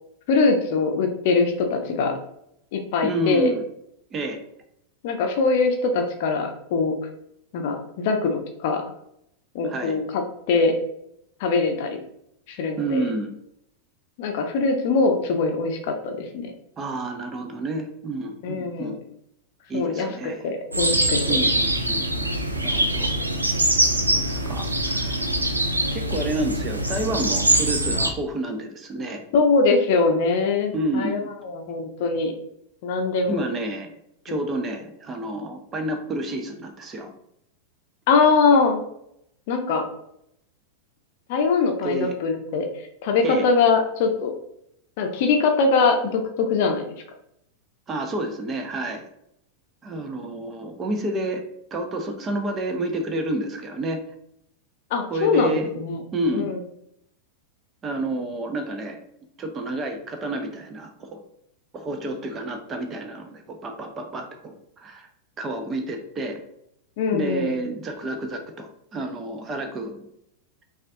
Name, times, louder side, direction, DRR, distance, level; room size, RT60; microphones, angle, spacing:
voice 1, 0.3-2.1 2.7-3.5 5.0-6.9 7.5-8.8 9.5-10.2 10.5-10.7 11.4-12.0 12.5-13.0 14.2-16.5 18.4-19.0 19.7-20.1 20.4-21.4 23.2-23.3 29.3-32.3 32.8-33.4 34.3-34.4 38.1-38.8 39.5-39.8 41.3-42.7 43.0-44.3 45.0-46.9 54.9-56.0 56.3-56.6 67.0-67.6, left 4 dB, 50° left, 4 dB, 0.6 m, -22 dB
voice 2, 3.0-3.6 4.1-4.4 9.6-10.0 12.8-13.3 16.8-19.0 19.7-20.5 21.3-22.3 22.6-23.1 24.1-25.3 25.9-29.2 30.7-31.2 33.3-33.9 34.2-37.1 41.8-42.1 43.2-43.5 47.9-49.1 49.8-51.4 51.7-54.0 55.1-55.7 56.1-56.5 57.8-59.0 59.4-61.2 61.7-65.1 65.4-66.4 67.1-70.0, right 2 dB, 25° right, 5 dB, 0.6 m, -29 dB
sound 1, 20.7-28.1, right 1 dB, 80° right, 0.4 m, -23 dB
5.2 x 2.4 x 2.7 m, 0.76 s
figure-of-eight pair, 90°, 0 cm